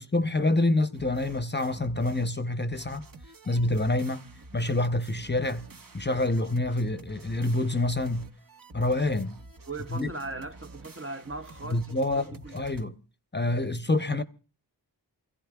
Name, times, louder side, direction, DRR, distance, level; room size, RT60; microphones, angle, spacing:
voice 1, 0.0-3.1 3.5-4.2 4.5-5.7 5.9-8.3 8.7-9.4 9.9-10.1 11.6-12.9 13.3-14.2, left 2 dB, 25° left, 0.7 m, -27 dB
sound 1, 0.9-2.4 2.7-12.9, right 2 dB, 50° right, 1.0 m, -49 dB
voice 2, 9.7-12.6, right 3 dB, 30° right, 0.6 m, -39 dB
28.5 x 16.0 x 2.3 m
wide cardioid pair, 60°, 44 cm